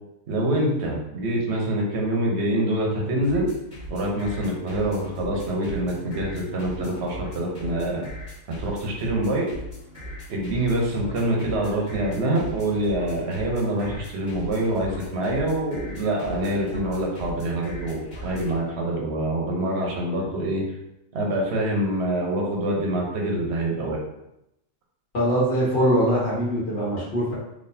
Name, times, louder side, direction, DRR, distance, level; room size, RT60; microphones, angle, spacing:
voice 1, 0.3-3.5 3.9-8.1 8.5-9.5 10.3-20.6 21.1-24.0, right 1 dB, 60° right, -1 dB, 1.1 m, -25 dB
sound 1, 3.2-18.6, equal, 20° left, 1.5 m, -39 dB
voice 2, 25.1-27.3, equal, 55° left, -8 dB, 1.5 m, -22 dB
4.1 x 3.0 x 2.7 m, 0.86 s
omnidirectional pair, 1.3 m